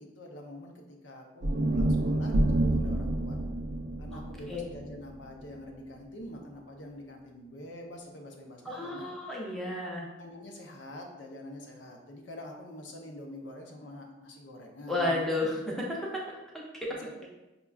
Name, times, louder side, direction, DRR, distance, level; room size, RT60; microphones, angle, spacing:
voice 1, 0.0-3.4 4.0-9.1 10.2-15.2 16.9-17.3, left 1 dB, 80° left, 2 dB, 0.6 m, -46 dB
sound 1, 1.4-5.7, right 1 dB, 65° right, 0.4 m, -29 dB
voice 2, 8.6-10.1 14.9-16.0 16.5-16.9, left 2 dB, ahead, -3 dB, 0.5 m, -32 dB
5.0 x 2.3 x 2.3 m, 1.0 s
head